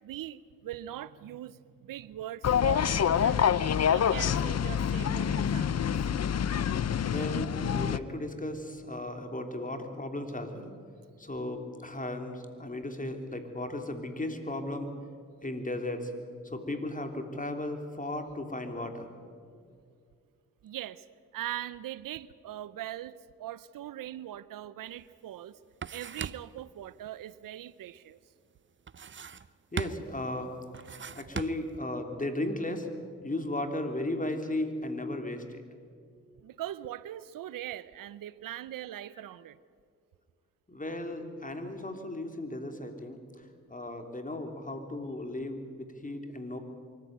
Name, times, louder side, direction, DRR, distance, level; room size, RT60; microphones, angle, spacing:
voice 1, 0.0-2.9 3.2-3.6 3.9-5.9 20.6-21.0 21.3-25.6 25.9-28.2 36.4-39.6, right 12 dB, 90° right, 18 dB, 0.7 m, -41 dB
sound 1, 2.4-8.0, left 8 dB, 50° left, 0.7 m, -27 dB
voice 2, 7.0-10.7 11.2-14.9 15.4-16.1 16.4-19.1 29.7-30.5 30.9-32.9 33.2-35.6 40.7-46.6, left 1 dB, 25° left, 6 dB, 3.3 m, -36 dB
sound 2, 24.9-25.0 25.4-26.6 28.9-29.5 29.8-30.2 30.7-31.8, right 6 dB, 35° right, 0.7 m, -39 dB
24.0 x 14.5 x 9.3 m, 2.3 s
cardioid pair, 50°, 32 cm